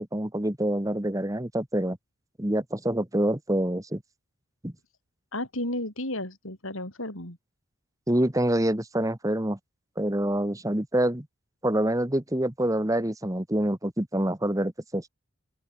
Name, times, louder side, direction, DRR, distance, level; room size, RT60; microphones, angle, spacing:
voice 1, 0.0-2.0 2.4-4.0 4.6-4.7 8.1-9.6 10.0-11.3 11.6-15.1, right 1 dB, 15° right, 1.4 m, -26 dB
voice 2, 5.3-7.4, left 1 dB, 70° left, 7.8 m, -33 dB
open air
head